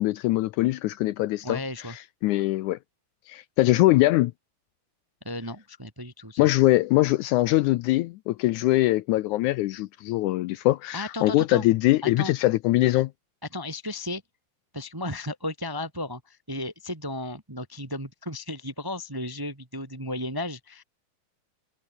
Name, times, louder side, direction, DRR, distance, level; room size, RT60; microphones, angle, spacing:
voice 1, 0.0-1.6 2.2-2.8 3.3-4.3 6.4-13.1, left 17 dB, 80° left, 1.9 m, -22 dB
voice 2, 1.4-1.9 5.2-6.4 10.9-11.6 12.0-12.3 13.5-14.2 14.7-20.8, left 1 dB, 10° right, 1.0 m, -34 dB
omnidirectional pair, 3.8 m